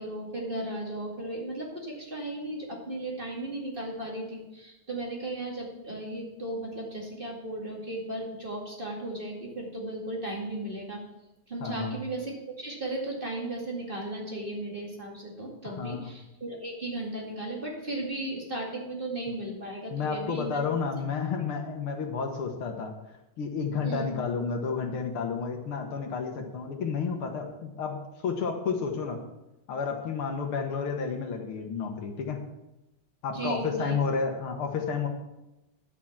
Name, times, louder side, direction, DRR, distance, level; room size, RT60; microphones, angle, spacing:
voice 1, 0.0-11.0 11.5-20.6 23.8-24.1 33.3-34.0, right 1 dB, 25° right, -2 dB, 2.3 m, -35 dB
voice 2, 11.6-12.0 15.6-16.1 19.9-22.9 23.4-29.2 29.7-32.4 33.2-35.1, left 5 dB, 75° left, 4 dB, 2.1 m, -31 dB
11.0 x 6.1 x 7.2 m, 0.96 s
omnidirectional pair, 2.4 m